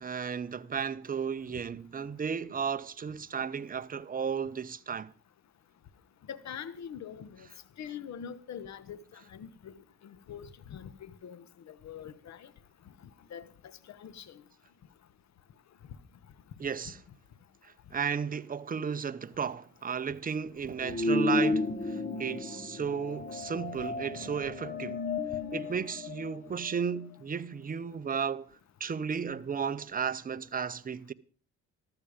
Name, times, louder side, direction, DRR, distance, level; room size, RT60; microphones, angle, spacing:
voice 1, 0.0-5.1 16.6-17.0 17.6-25.0 25.5-31.1, right 6 dB, 30° right, 0.7 m, -34 dB
voice 2, 6.3-7.5 7.8-9.7 10.0-12.5 13.3-13.5 13.9-14.4 16.8-16.9, left 8 dB, 65° left, 1.3 m, -44 dB
sound 1, 20.8-26.9, left 2 dB, 25° left, 1.3 m, -33 dB
14.0 x 12.5 x 5.1 m
cardioid pair, 90°, 30 cm